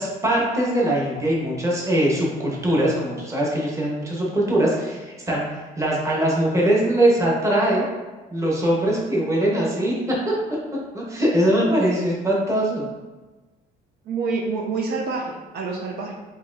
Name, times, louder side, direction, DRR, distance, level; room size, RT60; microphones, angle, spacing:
voice 1, 0.0-5.4 5.8-7.8 8.3-10.1 10.9-12.8, right 1 dB, 20° right, -4 dB, 1.1 m, -21 dB
voice 2, 14.0-16.1, right 4 dB, 70° right, 0 dB, 0.6 m, -27 dB
4.4 x 3.1 x 2.6 m, 1.2 s
cardioid pair, 110°, 17 cm